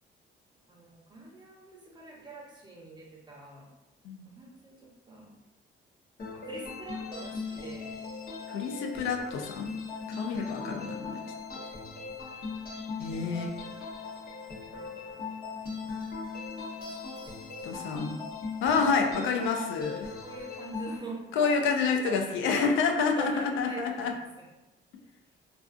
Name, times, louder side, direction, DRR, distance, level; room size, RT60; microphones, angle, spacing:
voice 1, 0.7-3.7 4.2-5.3 6.3-8.0 10.1-10.7 14.3-15.2 16.7-18.3 19.1-19.5 20.2-21.7 22.0-22.8 23.1-24.4, right 3 dB, 20° right, -3 dB, 0.7 m, -45 dB
sound 1, 6.2-21.0, left 4 dB, 50° left, 0.9 m, -39 dB
voice 2, 8.5-9.7 10.1-11.2 13.0-13.5 17.6-18.2 18.6-20.1 21.4-24.1, left 5 dB, 85° left, 3 dB, 0.4 m, -28 dB
2.3 x 2.3 x 2.4 m, 1.0 s
cardioid pair, 90°, 20 cm